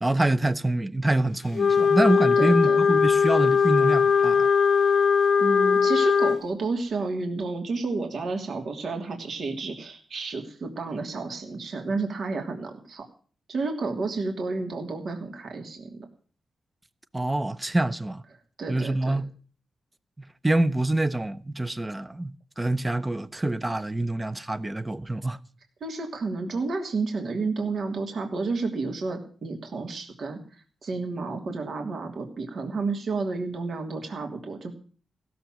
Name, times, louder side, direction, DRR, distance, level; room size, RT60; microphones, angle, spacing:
voice 1, 0.0-4.5 17.1-18.2 18.7-19.3 20.4-25.4, right 1 dB, 15° right, 0.9 m, -26 dB
Wind instrument woodwind instrument, 1.5-6.4, left 6 dB, 65° left, 0.8 m, -20 dB
voice 2, 2.4-2.9 4.9-5.1 5.4-13.0 13.5-16.0 18.6-19.2 25.8-30.4 30.8-34.7, right 3 dB, 60° right, 2.9 m, -31 dB
16.5 x 7.1 x 9.1 m
cardioid pair, 95°, 0 cm